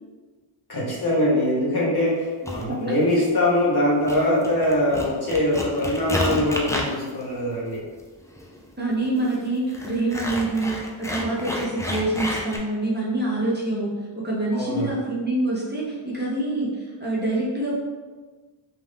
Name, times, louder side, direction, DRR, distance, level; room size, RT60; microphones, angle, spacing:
voice 1, 0.7-7.8 14.5-15.0, left 1 dB, 50° left, -6 dB, 1.0 m, -22 dB
sound 1, 2.4-2.7 3.4-3.7 4.0-12.6, left 1 dB, 5° left, 0.3 m, -31 dB
voice 2, 2.4-2.9 8.8-17.7, right 2 dB, 20° right, -6 dB, 0.7 m, -26 dB
2.6 x 2.3 x 3.3 m, 1.4 s
wide cardioid pair, 55°, 47 cm